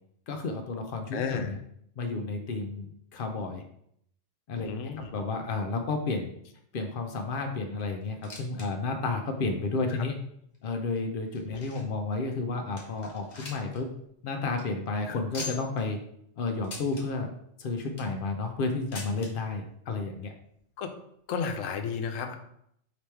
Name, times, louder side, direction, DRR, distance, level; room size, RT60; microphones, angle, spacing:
voice 1, 0.3-1.6 2.0-3.6 4.5-4.7 5.0-6.3 6.7-10.2 10.6-13.9 14.2-16.0 16.4-17.3 17.6-20.3, left 3 dB, 60° left, 4 dB, 0.5 m, -31 dB
voice 2, 1.1-1.5 4.6-5.1 11.5-11.6 15.1-15.2 20.8-20.9 21.3-22.4, left 6 dB, 80° left, 6 dB, 0.9 m, -32 dB
sound 1, 8.0-8.7 9.0-9.1 9.7-9.8 10.5-12.0 12.4-12.5 12.8-13.8 14.1-14.2 14.5-14.6 15.3-15.8 16.6-17.0 17.7-18.2 18.9-19.3 20.3-20.4 20.6-20.7 21.5-21.6, left 3 dB, 40° left, 0.8 m, -42 dB
3.3 x 2.9 x 4.4 m, 0.72 s
omnidirectional pair, 1.3 m